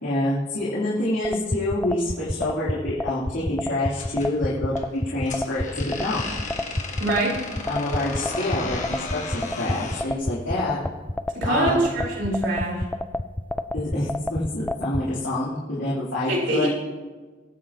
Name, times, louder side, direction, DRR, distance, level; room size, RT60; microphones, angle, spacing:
voice 1, 0.0-6.2 7.7-10.8 11.4-11.8 13.7-16.7, left 1 dB, 70° left, -8 dB, 3.2 m, -27 dB
sound 1, 1.2-15.0, left 1 dB, 10° left, 0.4 m, -28 dB
sound 2, 3.9-10.1, left 3 dB, 40° left, 1.6 m, -35 dB
voice 2, 7.0-7.3 11.4-12.8 16.3-16.7, right 2 dB, 70° right, -5 dB, 4.3 m, -24 dB
24.0 x 10.0 x 2.9 m, 1.3 s
head